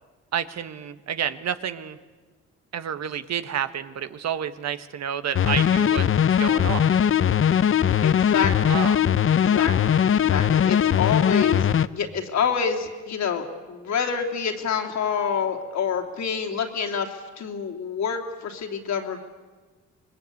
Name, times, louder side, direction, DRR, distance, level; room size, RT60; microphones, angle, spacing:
voice 1, 0.3-2.0 2.7-7.1 8.7-9.1, right 8 dB, 60° right, 11 dB, 1.3 m, -30 dB
sound 1, 5.3-11.9, left 9 dB, 45° left, 0.7 m, -20 dB
voice 2, 8.0-8.8 9.4-11.7 11.9-19.2, left 6 dB, 65° left, 3 dB, 3.1 m, -27 dB
26.0 x 21.0 x 8.5 m, 1.3 s
cardioid pair, 90°, 30 cm